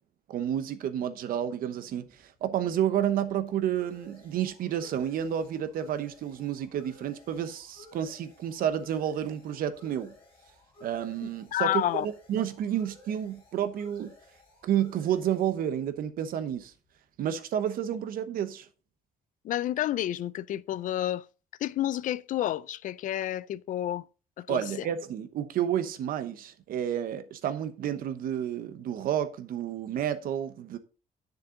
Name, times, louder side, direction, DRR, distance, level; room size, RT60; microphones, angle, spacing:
voice 1, 0.3-2.0 2.4-10.1 10.8-14.1 14.6-16.7 17.2-18.7 24.5-30.8, right 10 dB, 75° right, 1.0 m, -30 dB
sound 1, 1.9-17.2, left 2 dB, 35° left, 4.7 m, -56 dB
voice 2, 11.5-12.1 19.4-21.2 21.6-24.1 24.4-24.9, left 13 dB, 65° left, 0.4 m, -30 dB
9.7 x 6.8 x 3.9 m
cardioid pair, 180°, 15 cm